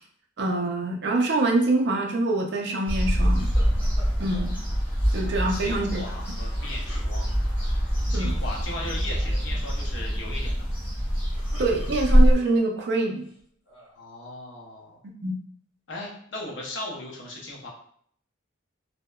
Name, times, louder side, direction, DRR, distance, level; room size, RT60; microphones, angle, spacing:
voice 1, 0.4-3.5 4.2-4.5 5.1-6.0 8.1-8.4 11.6-13.3 15.0-15.3, right 2 dB, 55° right, 1 dB, 0.4 m, -25 dB
sound 1, 2.9-12.4, equal, 10° left, 1.3 m, -24 dB
sound 2, 3.4-4.5 6.2-7.5 8.2-8.6 8.9-9.3 11.1-12.6 13.2-14.0, equal, 80° left, 1.0 m, -48 dB
voice 2, 5.5-7.3 8.1-10.7 14.0-15.0 15.9-17.7, left 1 dB, 65° left, -2 dB, 0.7 m, -37 dB
2.7 x 2.1 x 2.2 m, 0.62 s
head